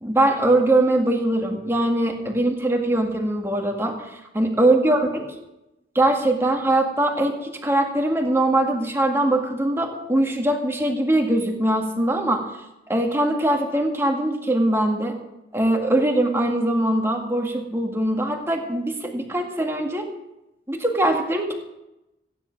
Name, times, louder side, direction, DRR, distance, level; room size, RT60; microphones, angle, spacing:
voice 1, 0.0-5.3 6.0-12.4 12.9-15.2 15.5-20.1 20.7-21.5, right 1 dB, 15° right, 2 dB, 1.9 m, -22 dB
16.0 x 10.0 x 6.0 m, 0.91 s
head